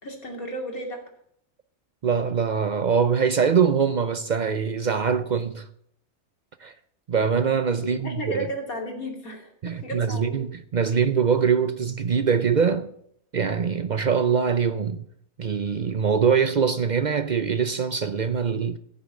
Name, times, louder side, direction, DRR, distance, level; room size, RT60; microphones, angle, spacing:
voice 1, 0.0-1.1 8.0-10.4, equal, 65° left, 3.1 m, -34 dB
voice 2, 2.0-5.7 6.6-6.7 7.1-8.5 9.6-12.9 13.3-15.0 15.4-18.8, right 6 dB, 75° right, 0.4 m, -23 dB
15.5 x 7.1 x 7.3 m
omnidirectional pair, 1.6 m